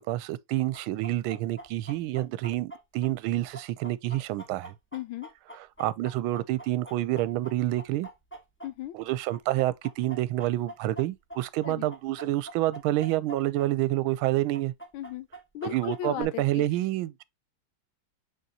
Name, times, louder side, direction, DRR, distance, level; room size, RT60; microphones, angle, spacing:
voice 1, 0.1-4.7 5.5-8.1 8.9-14.7 15.6-17.2, right 15 dB, 80° right, 1.4 m, -28 dB
Chicken rooster, 0.7-9.0 9.3-13.7 13.9-14.0 14.5-16.2, right 1 dB, 10° left, 0.8 m, -45 dB
voice 2, 4.9-5.3 8.6-9.0 11.6-11.8 14.9-15.3 15.5-16.6, left 11 dB, 80° left, 1.4 m, -36 dB
6.5 x 5.2 x 2.8 m
omnidirectional pair, 2.3 m